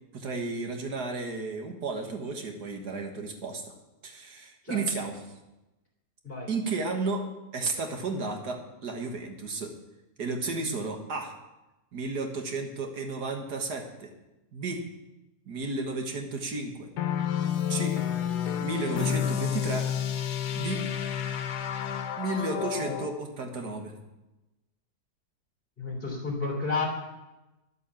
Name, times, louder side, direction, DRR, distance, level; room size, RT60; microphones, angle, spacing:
voice 1, 0.1-3.6 4.0-5.3 6.5-7.2 7.5-9.7 10.2-11.4 11.9-14.1 14.5-14.8 15.5-16.9 17.7-18.0 18.6-19.9 20.5-20.8 22.2-24.0, right 3 dB, 85° right, 3 dB, 2.1 m, -33 dB
sound 1, 17.0-23.1, left 9 dB, 85° left, 1.4 m, -30 dB
voice 2, 25.8-26.9, left 4 dB, 35° left, -1 dB, 3.3 m, -31 dB
11.0 x 8.3 x 7.0 m, 1.0 s
omnidirectional pair, 1.7 m